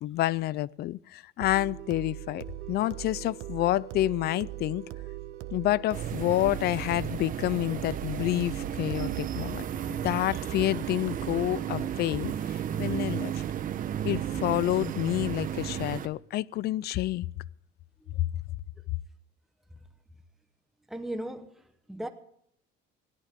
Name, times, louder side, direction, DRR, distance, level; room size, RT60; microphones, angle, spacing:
voice 1, 0.0-4.8 5.5-9.6 10.0-13.4 14.0-17.3, left 15 dB, 55° left, 0.5 m, -29 dB
sound 1, 1.4-9.4, right 15 dB, 80° right, 1.2 m, -42 dB
sound 2, 1.5-11.9, right 11 dB, 60° right, 3.9 m, -48 dB
sound 3, 5.9-16.1, right 10 dB, 45° right, 1.1 m, -33 dB
voice 2, 20.9-22.1, right 1 dB, ahead, 1.2 m, -37 dB
21.0 x 17.0 x 3.7 m
cardioid pair, 130°, 20 cm